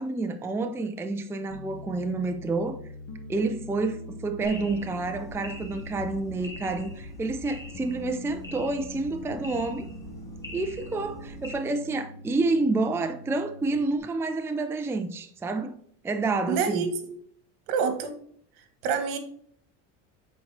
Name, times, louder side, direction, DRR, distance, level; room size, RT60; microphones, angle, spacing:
voice 1, 0.0-2.8 3.3-9.9 10.5-15.7 16.0-16.9, right 3 dB, 5° right, 0.5 m, -29 dB
Piano, 1.5-14.0, left 1 dB, 40° left, 1.4 m, -43 dB
sound 1, 4.4-11.5, left 1 dB, 10° left, 1.4 m, -44 dB
voice 2, 16.5-16.9 17.7-18.1 18.8-19.2, right 6 dB, 70° right, 1.5 m, -26 dB
8.2 x 4.4 x 3.3 m
cardioid pair, 125°, 37 cm